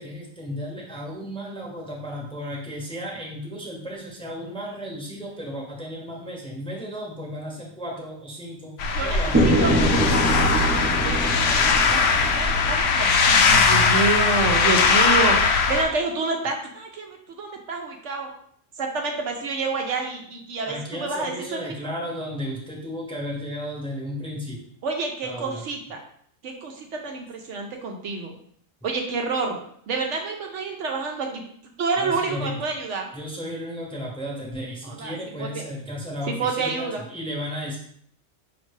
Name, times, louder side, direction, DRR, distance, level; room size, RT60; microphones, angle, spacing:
voice 1, 0.0-8.7 9.0-10.2 20.7-24.6 25.2-25.6 32.0-32.5 33.1-37.8, equal, 5° left, -3 dB, 0.8 m, -34 dB
sound 1, 8.8-15.8, left 4 dB, 75° left, 0.9 m, -20 dB
voice 2, 8.9-9.7 11.0-11.5 11.9-18.3 18.8-21.7 24.8-26.0 26.4-28.3 28.8-29.6 29.9-31.4 31.8-33.1 34.8-35.6 36.3-37.0, right 3 dB, 70° right, 2 dB, 0.9 m, -28 dB
sound 2, 9.3-13.2, right 1 dB, 15° right, 0.4 m, -24 dB
5.3 x 2.9 x 3.1 m, 0.64 s
omnidirectional pair, 1.3 m